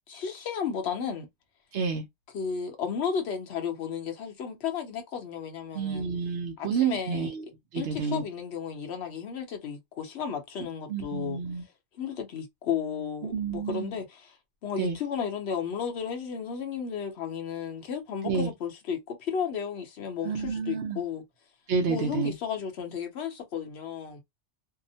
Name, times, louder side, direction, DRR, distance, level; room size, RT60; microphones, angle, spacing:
voice 1, 0.1-1.3 2.3-6.1 6.6-7.3 7.7-11.4 12.0-14.4 14.6-21.2 21.9-24.2, left 7 dB, 65° left, 1.0 m, -33 dB
voice 2, 1.7-2.0 5.7-7.4 7.7-8.2 10.9-11.6 13.2-14.0 14.8-15.0 18.2-18.5 20.2-21.0 21.7-22.3, right 5 dB, 65° right, 0.8 m, -29 dB
2.8 x 2.0 x 2.7 m
omnidirectional pair, 1.2 m